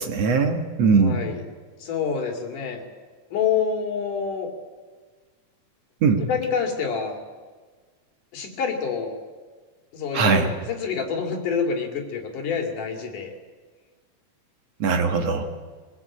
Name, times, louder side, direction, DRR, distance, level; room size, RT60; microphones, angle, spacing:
voice 1, 0.0-1.2 6.0-6.2 10.1-10.5 14.8-15.5, right 4 dB, 60° right, 5 dB, 2.5 m, -20 dB
voice 2, 1.0-1.4 1.8-2.8 3.3-4.5 6.1-7.2 8.3-9.1 9.9-13.3, left 6 dB, 80° left, 3 dB, 4.1 m, -27 dB
23.5 x 20.0 x 8.6 m, 1.5 s
omnidirectional pair, 3.6 m